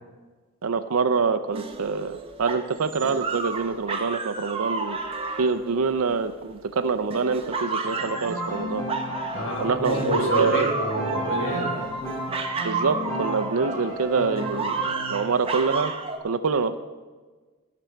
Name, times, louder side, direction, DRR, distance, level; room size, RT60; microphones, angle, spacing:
voice 1, 0.6-5.0 5.4-8.8 9.6-10.7 12.6-14.7 15.1-15.9 16.2-16.7, right 5 dB, 75° right, 10 dB, 0.5 m, -25 dB
sound 1, 1.5-6.5 7.1-9.6 9.8-14.0 14.4-16.2, right 4 dB, 25° right, 0.8 m, -31 dB
Piano, 7.8-15.2, equal, 15° left, 2.8 m, -34 dB
voice 2, 9.3-11.8, right 1 dB, 60° left, 2 dB, 1.5 m, -26 dB
17.0 x 6.1 x 4.5 m, 1.3 s
head